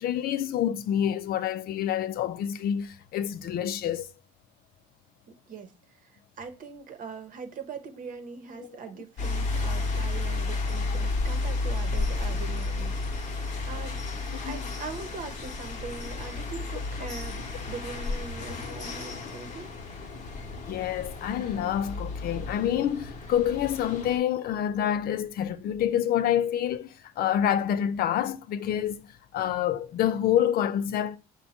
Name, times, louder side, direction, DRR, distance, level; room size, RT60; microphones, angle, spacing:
voice 1, 0.0-4.1 8.6-8.7 14.4-14.6 20.7-29.0 29.3-31.2, left 10 dB, 60° left, 0.5 m, -27 dB
voice 2, 5.5-14.0 14.4-19.7, right 5 dB, 55° right, 0.9 m, -41 dB
sound 1, 9.2-24.2, left 3 dB, 45° left, 1.0 m, -32 dB
5.4 x 2.2 x 4.2 m
cardioid pair, 110°, 17 cm